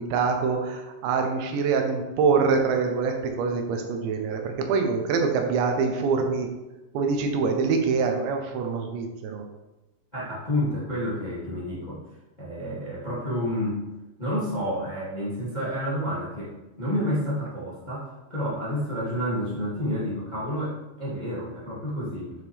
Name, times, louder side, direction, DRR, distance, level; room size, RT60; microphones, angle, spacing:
voice 1, 0.0-6.5 6.9-9.4, right 5 dB, 90° right, 3 dB, 3.3 m, -25 dB
voice 2, 10.1-12.0 12.4-13.8 14.2-22.3, equal, 15° left, -8 dB, 1.5 m, -29 dB
10.5 x 6.2 x 3.5 m, 1.0 s
omnidirectional pair, 5.0 m